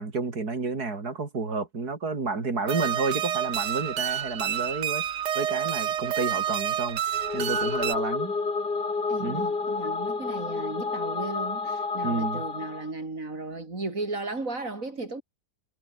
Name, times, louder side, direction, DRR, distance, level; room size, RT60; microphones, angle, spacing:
voice 1, 0.0-5.0 5.4-7.0 7.3-8.4 9.2-9.5 12.0-12.5, right 4 dB, 65° right, 3.7 m, -30 dB
sound 1, 2.7-7.9, right 10 dB, 85° right, 1.7 m, -29 dB
sound 2, 7.1-12.9, left 4 dB, 80° left, 4.0 m, -30 dB
voice 2, 9.1-15.2, right 3 dB, 50° right, 4.9 m, -35 dB
omnidirectional pair, 1.8 m